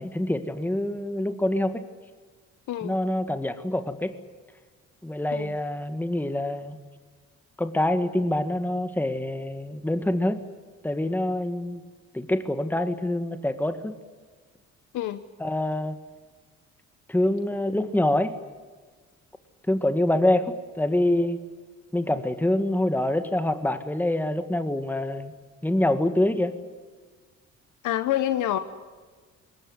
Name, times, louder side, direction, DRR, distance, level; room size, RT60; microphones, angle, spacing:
voice 1, 0.0-1.8 2.8-4.2 5.0-6.8 7.6-10.4 10.8-11.8 12.1-13.9 15.4-16.0 17.1-18.4 19.7-21.4 21.9-25.3 25.6-26.5, left 1 dB, 5° left, 9 dB, 1.8 m, -25 dB
voice 2, 27.8-28.6, left 12 dB, 80° left, 10 dB, 1.1 m, -27 dB
21.5 x 19.5 x 9.7 m, 1.4 s
cardioid pair, 90°, 30 cm